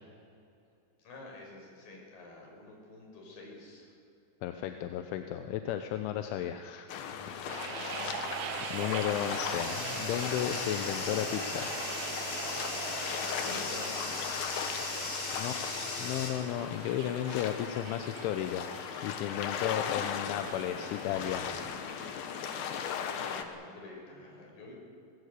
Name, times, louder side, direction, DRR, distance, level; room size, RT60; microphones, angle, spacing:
voice 1, 1.0-3.9 7.8-8.7 13.2-14.7 22.5-24.7, left 2 dB, 50° left, 0 dB, 7.1 m, -48 dB
voice 2, 4.4-6.9 7.6-8.1 8.7-11.7 15.4-15.6 16.0-18.7 19.0-21.5, left 11 dB, 85° left, 7 dB, 3.2 m, -34 dB
sound 1, 6.9-23.4, left 8 dB, 65° left, 2.6 m, -38 dB
Bathtub (filling or washing), 7.1-16.3, left 2 dB, 30° left, 4.3 m, -39 dB
sound 2, 7.5-23.4, right 10 dB, 85° right, 3.5 m, -44 dB
23.0 x 19.5 x 8.2 m, 2.7 s
omnidirectional pair, 5.4 m